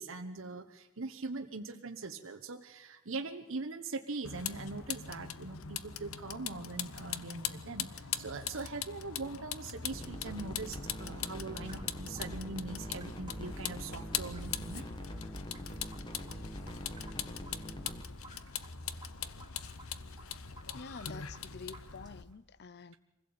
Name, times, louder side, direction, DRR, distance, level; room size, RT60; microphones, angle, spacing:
voice 1, 0.0-14.9, right 3 dB, 65° right, 1.1 m, -41 dB
Vehicle, 4.2-22.2, left 9 dB, 75° left, 1.0 m, -42 dB
sound 1, 9.9-18.0, equal, 20° left, 1.7 m, -44 dB
sound 2, 11.6-22.3, right 1 dB, 20° right, 2.9 m, -54 dB
voice 2, 20.7-23.0, left 4 dB, 50° left, 0.7 m, -48 dB
24.5 x 16.0 x 8.7 m
head